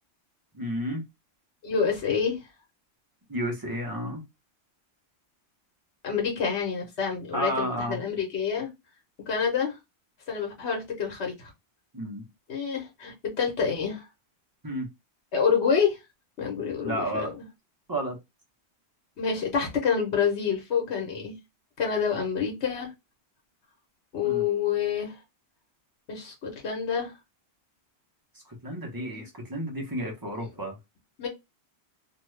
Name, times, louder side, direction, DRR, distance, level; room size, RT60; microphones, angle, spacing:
voice 1, 0.5-1.0 3.3-4.2 7.3-8.0 11.9-12.3 14.6-14.9 16.8-17.3 17.9-18.2 24.2-24.5 28.6-30.8, equal, 20° right, 0.9 m, -31 dB
voice 2, 1.6-2.4 6.0-8.7 9.3-9.7 10.3-11.5 12.5-14.0 15.3-16.0 16.4-17.3 19.2-21.3 21.8-22.9 24.1-25.1 26.1-27.1 28.9-29.2 31.2-31.3, left 6 dB, 80° left, 1.2 m, -27 dB
2.7 x 2.3 x 3.1 m
omnidirectional pair, 1.1 m